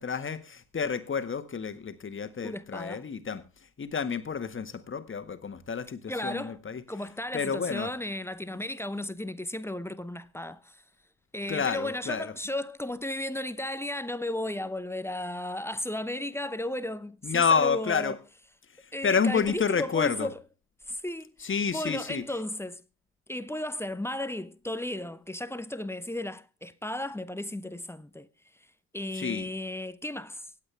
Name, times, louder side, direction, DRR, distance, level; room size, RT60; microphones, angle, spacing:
voice 1, 0.0-3.4 3.8-6.8 7.3-7.9 11.5-12.3 17.2-18.1 18.8-20.3 21.4-22.2 29.1-29.5, left 6 dB, 30° left, 1.7 m, -29 dB
voice 2, 2.4-3.0 6.1-6.6 6.9-10.8 11.3-18.2 18.9-20.4 20.8-22.8 23.3-28.3 28.9-30.5, left 1 dB, 5° left, 0.8 m, -34 dB
25.0 x 8.6 x 3.4 m
hypercardioid pair, 60°, 43 cm